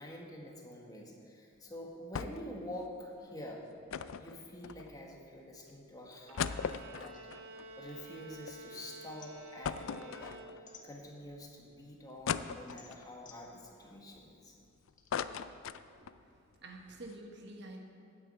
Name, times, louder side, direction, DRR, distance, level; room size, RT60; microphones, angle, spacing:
voice 1, 0.0-3.6 4.2-7.2 7.8-14.6, left 1 dB, 20° left, 0 dB, 1.5 m, -47 dB
sound 1, 2.1-2.6 2.8-2.9 3.9-5.2 5.7-5.8 6.1-8.6 8.9-9.0 9.6-10.8 11.3-11.4 12.3-13.1 13.6-14.6 14.9-16.2 16.6-16.7 16.9-17.1, left 7 dB, 75° left, 0.4 m, -39 dB
Bowed string instrument, 6.3-11.0, right 2 dB, 80° right, 1.2 m, -51 dB
sound 2, 7.1-8.6 8.9-11.5 11.9-15.1, left 5 dB, 40° left, 1.3 m, -59 dB
voice 2, 15.8-17.8, right 2 dB, 55° right, 2 dB, 1.4 m, -49 dB
9.7 x 9.2 x 8.2 m, 2.5 s
head